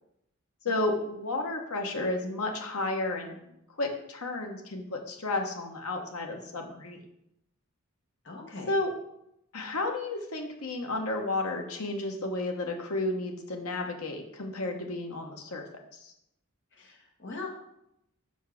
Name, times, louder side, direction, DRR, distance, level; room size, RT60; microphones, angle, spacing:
voice 1, 0.6-3.4 3.8-7.0 8.7-8.9 9.5-15.6 16.0-16.1, left 2 dB, 80° left, 3 dB, 1.2 m, -32 dB
voice 2, 8.2-8.8 16.7-17.5, left 3 dB, 55° left, 0 dB, 1.5 m, -41 dB
5.9 x 4.6 x 5.8 m, 0.80 s
head